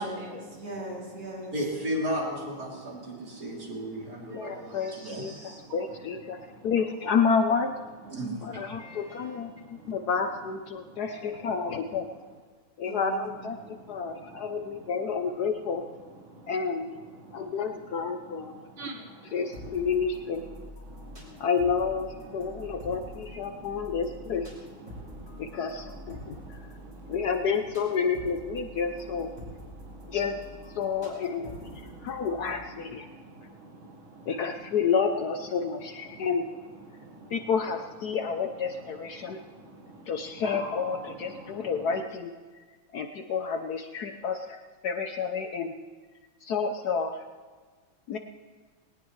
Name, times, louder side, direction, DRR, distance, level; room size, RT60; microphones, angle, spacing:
voice 1, 0.0-1.5 8.0-8.2 12.8-13.3, right 1 dB, 65° right, -4 dB, 4.4 m, -39 dB
voice 2, 1.5-5.6 8.1-8.5 8.8-9.3 11.1-11.4, equal, 45° right, -3 dB, 3.6 m, -35 dB
voice 3, 4.3-7.8 8.4-12.1 12.8-15.8 16.5-16.9 17.3-18.6 19.2-20.5 21.4-24.5 25.4-26.6 27.1-29.3 30.1-30.4 30.7-33.1 34.3-36.5 37.3-39.4 40.1-42.3 42.9-45.7 46.4-47.2 48.1-48.2, left 5 dB, 65° left, 6 dB, 1.1 m, -30 dB
voice 4, 18.8-19.3 20.9-21.4 23.5-23.7 24.9-25.4 26.2-27.1 29.7-30.2 31.9-32.1 33.1-34.3 36.9-37.3 39.2-39.3 39.6-40.1 40.4-40.8 41.4-41.7, right 2 dB, 90° right, 2 dB, 2.4 m, -45 dB
sound 1, 19.5-32.7, equal, 20° right, 4.6 m, -46 dB
20.0 x 18.5 x 3.2 m, 1.5 s
omnidirectional pair, 2.2 m